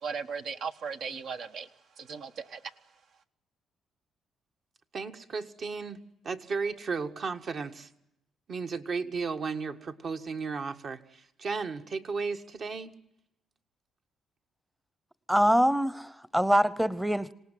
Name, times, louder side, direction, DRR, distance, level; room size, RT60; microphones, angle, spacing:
voice 1, 0.0-1.7 2.0-2.7, right 5 dB, 70° right, 7 dB, 1.5 m, -37 dB
voice 2, 4.9-7.9 8.5-13.0, right 4 dB, 55° right, 6 dB, 1.7 m, -34 dB
voice 3, 15.3-17.3, equal, 5° right, 17 dB, 0.9 m, -24 dB
26.5 x 18.0 x 9.3 m, 0.84 s
cardioid pair, 90°, 0 cm